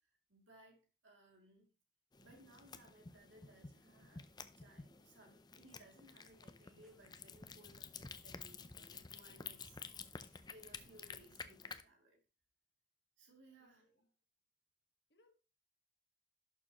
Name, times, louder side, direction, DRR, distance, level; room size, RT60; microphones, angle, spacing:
voice 1, 0.0-1.7 2.2-4.3 4.6-12.2 13.2-13.9, right 2 dB, 85° right, 2.8 m, -64 dB
sound 1, 2.1-11.8, left 5 dB, 20° left, 0.5 m, -52 dB
sound 2, 6.4-11.3, left 1 dB, ahead, 1.0 m, -76 dB
voice 2, 13.6-14.1 15.1-15.3, left 2 dB, 60° left, 1.6 m, -73 dB
11.5 x 6.8 x 3.0 m
head